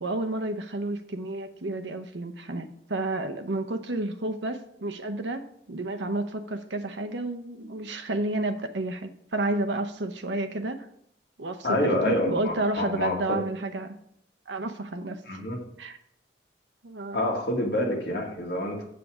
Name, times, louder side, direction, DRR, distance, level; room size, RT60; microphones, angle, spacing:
voice 1, 0.0-10.9 11.4-11.7 12.0-13.9 14.5-15.4 15.8-16.0 16.8-17.3, right 2 dB, 80° right, 8 dB, 0.8 m, -31 dB
voice 2, 11.6-13.4 15.3-15.6 17.1-18.8, left 1 dB, 60° left, -1 dB, 2.0 m, -27 dB
7.6 x 6.9 x 4.9 m, 0.71 s
head